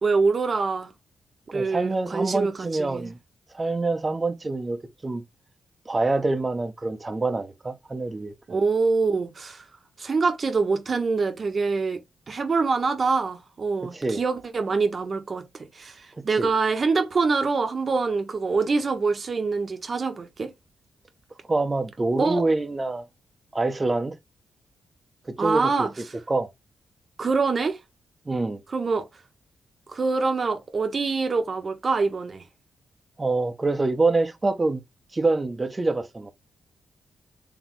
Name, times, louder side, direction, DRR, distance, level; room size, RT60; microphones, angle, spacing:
voice 1, 0.0-0.9 1.5-3.1 8.5-9.6 10.0-12.0 12.3-15.4 15.7-20.5 22.2-22.4 25.4-25.9 27.2-27.8 28.7-29.1 29.9-32.4, right 4 dB, 50° right, 1.1 m, -25 dB
voice 2, 1.5-3.2 3.5-5.2 5.9-8.6 13.8-14.2 16.2-16.5 21.5-23.0 23.5-24.1 25.4-25.9 26.3-26.5 28.3-28.6 33.2-34.8 35.1-36.3, right 3 dB, 30° right, 0.9 m, -26 dB
4.1 x 3.4 x 3.1 m
supercardioid pair, 50°, 0 cm